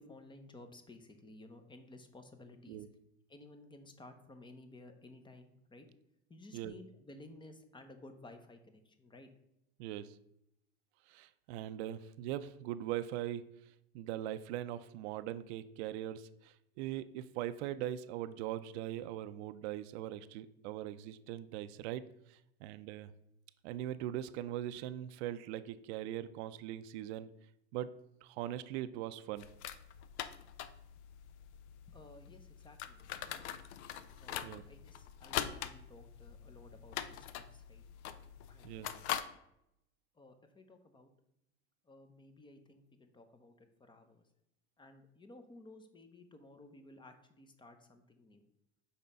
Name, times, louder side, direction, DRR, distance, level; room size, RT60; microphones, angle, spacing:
voice 1, 0.0-2.9 3.3-5.9 6.3-9.3 31.9-33.5 34.2-37.8 38.5-39.0 40.1-41.1 41.8-44.2 44.8-48.4, left 2 dB, 15° left, 7 dB, 0.8 m, -56 dB
voice 2, 9.8-10.2 11.1-13.4 13.9-23.1 23.6-27.3 27.7-27.9 28.2-29.5 34.4-34.6 38.6-38.9, right 12 dB, 75° right, 13 dB, 0.5 m, -41 dB
sound 1, 29.4-39.2, left 10 dB, 85° left, 0.6 m, -43 dB
5.5 x 4.4 x 5.2 m, 0.81 s
supercardioid pair, 115°, 33 cm